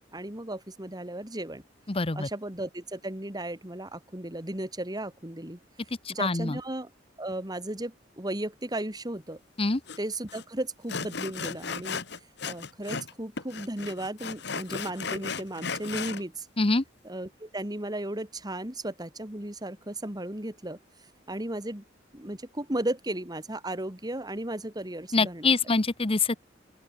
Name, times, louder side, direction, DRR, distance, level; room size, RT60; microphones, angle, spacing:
voice 1, 0.1-1.6 2.1-5.6 6.1-6.9 7.2-9.4 10.0-12.0 12.5-16.5 17.0-20.8 21.3-21.8 22.1-25.5, right 1 dB, 20° right, 2.8 m, -35 dB
voice 2, 1.9-2.3 6.0-6.6 9.6-9.8 16.6-16.8 25.1-26.4, left 3 dB, 30° left, 1.0 m, -25 dB
Sawing, 9.9-10.0 10.3-10.4 10.9-13.1 13.4-16.2, left 5 dB, 65° left, 2.2 m, -35 dB
open air
head